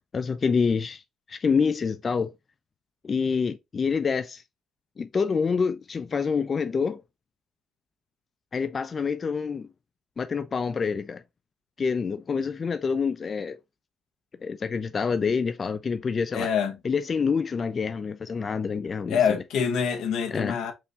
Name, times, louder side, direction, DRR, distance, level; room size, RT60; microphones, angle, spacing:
voice 1, 0.1-1.0 1.3-2.3 3.0-4.4 5.0-7.0 8.5-9.7 10.2-11.2 11.8-13.6 14.4-16.5 16.8-19.2 20.3-20.6, left 5 dB, 40° left, 0.4 m, -27 dB
voice 2, 16.3-16.8 19.1-20.7, left 7 dB, 85° left, 1.0 m, -25 dB
4.7 x 2.7 x 3.3 m
cardioid pair, 90°, 0 cm